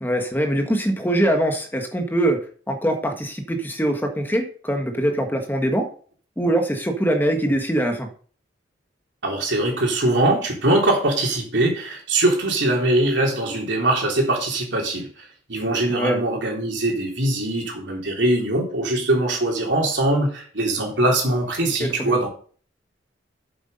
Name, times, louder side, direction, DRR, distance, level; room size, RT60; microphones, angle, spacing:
voice 1, 0.0-2.4 2.7-5.9 6.4-8.1 15.9-16.2 21.8-22.2, right 1 dB, 10° left, 4 dB, 1.5 m, -23 dB
voice 2, 9.2-15.1 15.5-22.3, right 1 dB, 70° right, 0 dB, 3.5 m, -22 dB
8.1 x 8.1 x 5.3 m, 0.43 s
head